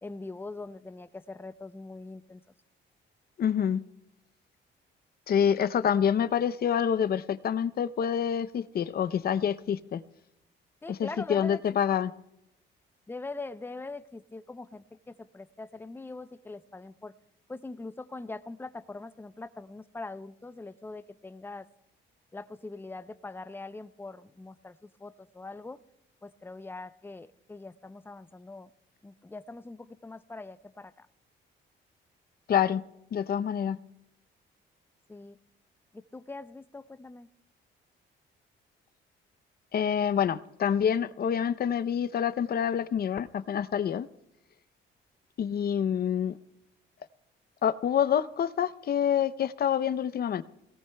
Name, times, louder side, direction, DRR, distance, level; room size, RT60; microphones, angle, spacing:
voice 1, 0.0-2.4 10.8-11.8 13.1-17.1 17.5-21.7 22.3-25.8 26.2-28.7 29.0-31.1 35.1-35.4 35.9-37.3, left 3 dB, 10° left, 13 dB, 0.5 m, -42 dB
voice 2, 3.4-3.8 5.3-10.0 10.9-12.1 32.5-32.8 33.1-33.8 39.7-44.1 45.4-46.4 47.6-50.4, left 8 dB, 50° left, 15 dB, 0.7 m, -27 dB
26.0 x 18.0 x 2.3 m, 0.84 s
cardioid pair, 90°, 20 cm